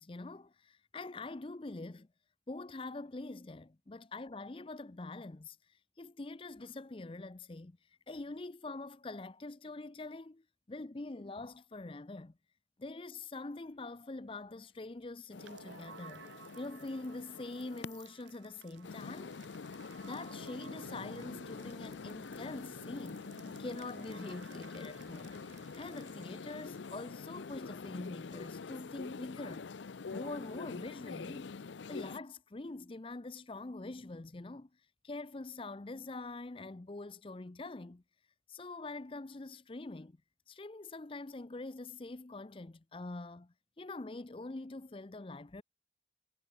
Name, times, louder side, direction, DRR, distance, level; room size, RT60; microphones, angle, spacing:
voice 1, 0.0-2.1 2.5-12.3 12.8-16.2 16.6-19.4 20.0-23.3 23.6-29.6 30.1-31.6 31.9-34.7 35.0-38.0 38.5-40.2 40.5-45.6, left 2 dB, 30° left, 0.6 m, -44 dB
sound 1, 13.3-25.5, left 2 dB, 65° left, 6.3 m, -82 dB
sound 2, 15.3-18.1 18.8-32.2, left 4 dB, 85° left, 0.6 m, -46 dB
sound 3, 15.3-27.2, right 6 dB, 75° right, 0.4 m, -56 dB
head